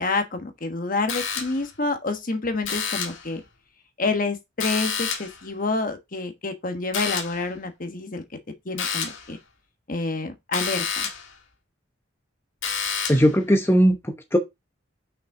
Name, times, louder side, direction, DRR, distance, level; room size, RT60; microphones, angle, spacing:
voice 1, 0.0-3.4 4.0-8.2 8.6-9.4 9.9-11.1, left 3 dB, 45° left, 1.2 m, -28 dB
sound 1, 1.1-1.8 2.6-3.3 4.6-5.4 6.9-7.5 8.8-9.3 10.5-11.3 12.6-13.4, left 6 dB, 80° left, 1.5 m, -29 dB
voice 2, 13.1-14.4, equal, 10° left, 0.9 m, -19 dB
5.9 x 5.6 x 3.7 m
head